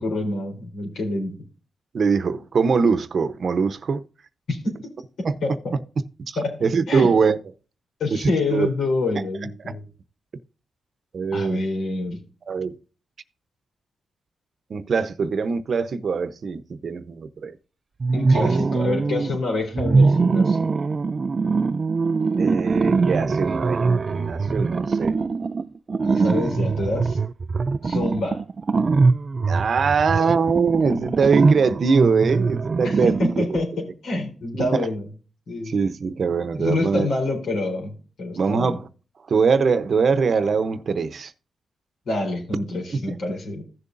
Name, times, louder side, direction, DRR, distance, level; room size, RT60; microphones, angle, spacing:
voice 1, 0.0-1.4 4.5-4.7 5.4-5.5 6.4-7.1 8.0-9.8 11.3-12.2 18.1-20.6 26.0-27.2 27.8-28.4 32.8-35.0 35.5-35.7 36.6-38.7 42.1-43.6, left 2 dB, 80° left, 3.9 m, -27 dB
voice 2, 1.9-4.0 5.2-5.4 6.3-7.4 8.1-8.7 9.6-9.7 11.1-11.6 12.5-12.7 14.7-17.5 22.4-25.2 29.5-33.6 34.5-34.9 35.7-37.1 38.3-38.9 39.3-41.3 42.9-43.1, right 5 dB, 60° right, 0.8 m, -22 dB
sound 1, 18.0-19.4 19.7-33.6, right 4 dB, 40° right, 0.3 m, -22 dB
15.5 x 6.8 x 2.6 m
cardioid pair, 75°, 0 cm